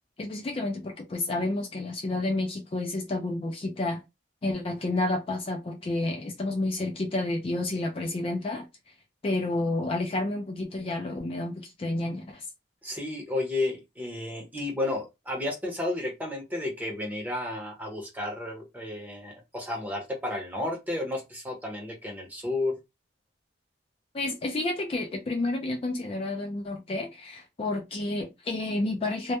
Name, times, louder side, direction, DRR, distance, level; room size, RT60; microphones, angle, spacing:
voice 1, 0.2-4.0 4.4-8.7 9.2-12.4 24.1-29.4, left 2 dB, 30° left, 0.3 m, -30 dB
voice 2, 12.8-22.8, left 2 dB, 10° right, 0.7 m, -32 dB
2.2 x 2.1 x 2.8 m
head